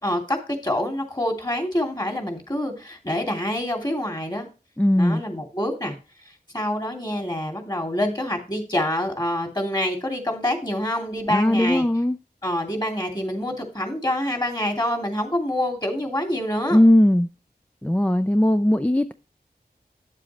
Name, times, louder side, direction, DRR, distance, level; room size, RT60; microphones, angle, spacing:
voice 1, 0.0-4.5 5.0-6.0 6.5-11.8 12.4-16.8, left 1 dB, 25° left, 2.8 m, -26 dB
voice 2, 4.8-5.2 11.3-12.2 16.7-17.3 17.8-19.1, left 1 dB, 10° left, 0.4 m, -18 dB
10.0 x 7.5 x 3.1 m
wide cardioid pair, 40°, 17 cm